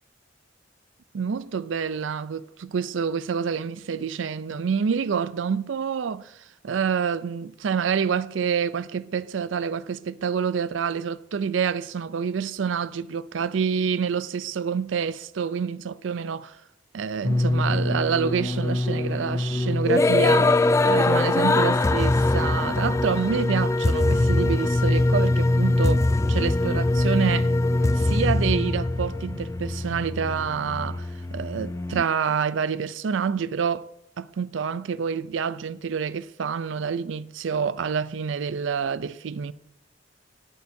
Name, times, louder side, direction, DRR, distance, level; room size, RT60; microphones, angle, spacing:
voice 1, 1.1-6.4 6.6-16.6 16.9-27.5 27.9-33.9 34.2-39.5, right 6 dB, 85° right, 0.4 m, -27 dB
sound 1, 17.2-32.0, left 2 dB, 15° left, 0.3 m, -22 dB
18.0 x 11.5 x 2.7 m
head